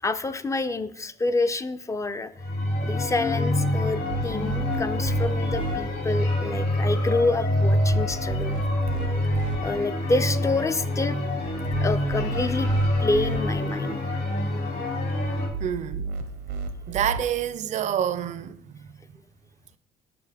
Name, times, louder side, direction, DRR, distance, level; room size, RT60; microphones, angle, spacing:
voice 1, 0.0-2.3 2.8-8.6 9.6-11.2 11.8-12.7 13.0-14.0, left 3 dB, 20° left, 0.4 m, -27 dB
sound 1, 2.3-15.5, left 1 dB, 65° left, 2.7 m, -26 dB
sound 2, 3.8-5.8 7.6-9.6 11.5-13.4 15.3-17.2, right 4 dB, 85° right, 0.8 m, -33 dB
voice 2, 15.6-16.2 16.9-19.0, right 9 dB, 45° right, 0.4 m, -28 dB
6.8 x 5.7 x 3.4 m
cardioid pair, 110°, 17 cm